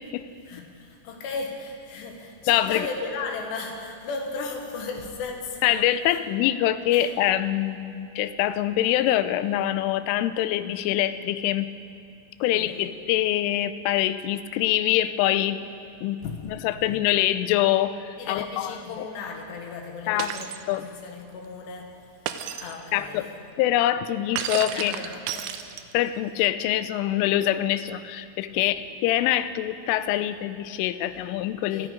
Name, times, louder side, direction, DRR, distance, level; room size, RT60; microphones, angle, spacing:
voice 1, 0.5-6.2 6.9-7.1 12.5-12.9 16.2-16.6 18.2-22.3 22.6-23.4 24.7-25.5 31.7-31.9, left 4 dB, 70° left, 3 dB, 3.1 m, -36 dB
voice 2, 2.5-2.9 5.6-11.7 12.4-15.6 16.0-16.2 16.5-18.7 20.1-20.3 20.7-20.8 22.9-23.3 23.6-24.9 25.9-31.9, left 13 dB, 90° left, 12 dB, 3.1 m, -24 dB
Shatter, 20.2-20.6 22.3-22.8 24.4-26.1, right 9 dB, 85° right, 3.0 m, -32 dB
18.5 x 13.5 x 5.1 m, 2.5 s
omnidirectional pair, 5.5 m